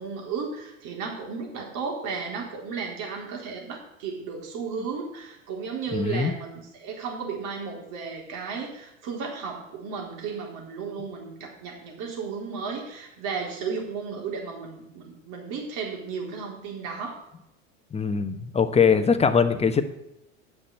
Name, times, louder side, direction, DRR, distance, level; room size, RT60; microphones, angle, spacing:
voice 1, 0.0-17.2, right 5 dB, 55° right, 0 dB, 4.0 m, -34 dB
voice 2, 5.9-6.3 17.9-19.8, left 6 dB, 15° left, 9 dB, 1.1 m, -22 dB
9.8 x 6.8 x 7.7 m, 0.85 s
hypercardioid pair, 95°, 39 cm